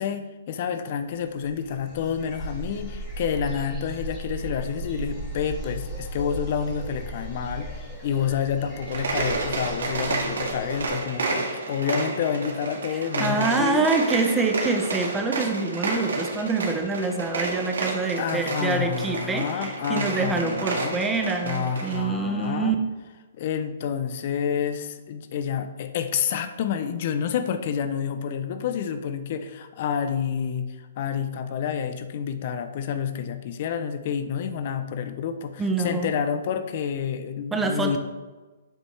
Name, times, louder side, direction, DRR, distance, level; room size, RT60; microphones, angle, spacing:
voice 1, 0.0-13.9 14.3-14.4 18.2-21.0 21.4-22.8 23.4-38.0, left 7 dB, 45° left, 9 dB, 0.5 m, -29 dB
sound 1, 1.3-10.9, right 1 dB, 10° left, 2.1 m, -37 dB
sound 2, 8.8-22.0, right 3 dB, 85° right, 1.7 m, -30 dB
voice 2, 12.9-22.8 35.6-36.1 37.5-38.0, right 3 dB, 10° right, 4 dB, 0.7 m, -26 dB
7.2 x 5.4 x 3.3 m, 1.2 s
hypercardioid pair, 150°, 0 cm